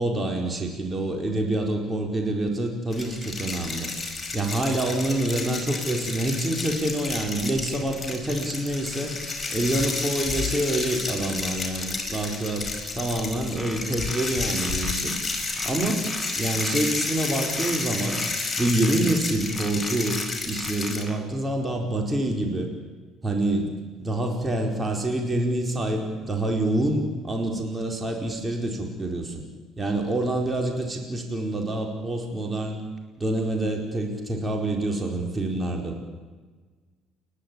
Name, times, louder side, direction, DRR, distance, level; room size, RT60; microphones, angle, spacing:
voice 1, 0.0-3.9 4.3-9.1 9.5-15.2 15.6-16.1 16.4-18.2 18.6-22.7 23.2-23.7 24.0-29.4 29.8-32.8 33.2-36.0, right 1 dB, 20° right, 2 dB, 4.6 m, -27 dB
sound 1, 2.9-21.0, left 3 dB, 20° left, 5.4 m, -31 dB
sound 2, 9.4-16.0, left 7 dB, 35° left, 4.3 m, -38 dB
sound 3, 13.6-15.2 15.6-16.8 17.6-19.2 19.6-21.2, left 1 dB, ahead, 2.3 m, -39 dB
29.5 x 12.0 x 8.8 m, 1.4 s
hypercardioid pair, 55°, 0 cm